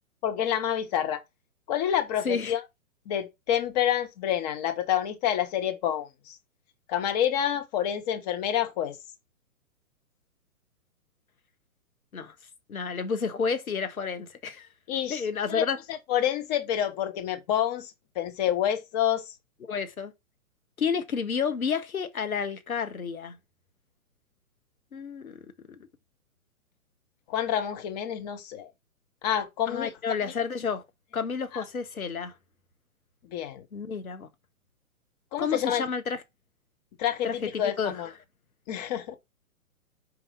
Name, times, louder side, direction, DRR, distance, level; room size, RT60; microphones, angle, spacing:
voice 1, 0.2-1.2 1.7-2.6 3.1-6.4 6.9-9.0 14.9-15.2 15.5-19.3 27.3-28.7 29.2-29.9 30.2-30.3 31.5-31.6 33.3-33.7 35.3-35.8 37.0-38.1 38.7-39.1, left 10 dB, 30° left, 1.0 m, -28 dB
voice 2, 12.7-14.7 15.1-15.8 19.6-20.1 20.8-23.4 24.9-25.4 25.7-25.8 29.7-30.8 31.1-32.3 33.7-34.3 35.4-36.2 37.2-37.9, left 6 dB, 75° left, 1.5 m, -30 dB
5.0 x 4.7 x 5.5 m
figure-of-eight pair, 120°, 43 cm